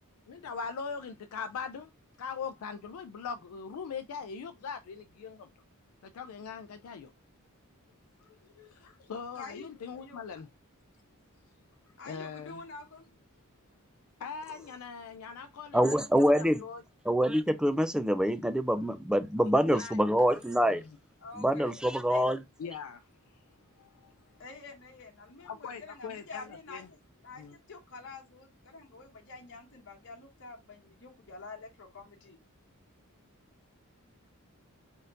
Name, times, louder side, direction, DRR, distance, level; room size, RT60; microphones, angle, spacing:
voice 1, 0.3-1.9 2.2-5.5 6.0-7.1 8.2-10.5 12.1-12.6 14.2-16.0 16.3-16.8 19.4-20.0 20.3-20.4 20.6-20.8 22.6-23.4 23.8-24.1 25.4-26.9 27.4-27.6, left 6 dB, 85° left, 0.4 m, -41 dB
voice 2, 9.3-10.2 12.0-13.1 21.2-22.2 24.4-27.0 27.2-32.4, left 4 dB, 60° left, 1.1 m, -48 dB
voice 3, 15.7-16.6 17.1-20.8 21.4-22.4, equal, 5° right, 0.3 m, -25 dB
4.2 x 3.9 x 2.4 m
head